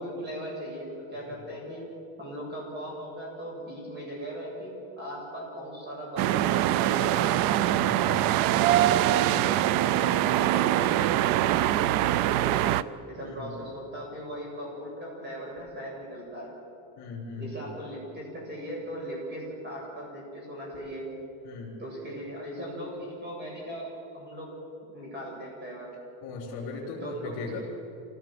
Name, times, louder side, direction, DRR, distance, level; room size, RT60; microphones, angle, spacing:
voice 1, 0.0-1.9 2.2-7.3 8.7-12.7 13.1-16.5 17.4-21.1 21.8-24.5 24.9-25.9 27.0-27.6, equal, 20° right, -3 dB, 7.7 m, -38 dB
sound 1, 6.2-12.8, right 13 dB, 45° right, 0.5 m, -23 dB
voice 2, 7.6-8.3 13.2-13.6 17.0-17.7 21.4-21.8 26.2-27.6, left 3 dB, 35° left, -8 dB, 3.9 m, -38 dB
27.5 x 17.0 x 7.6 m, 2.6 s
cardioid pair, 175°, 49 cm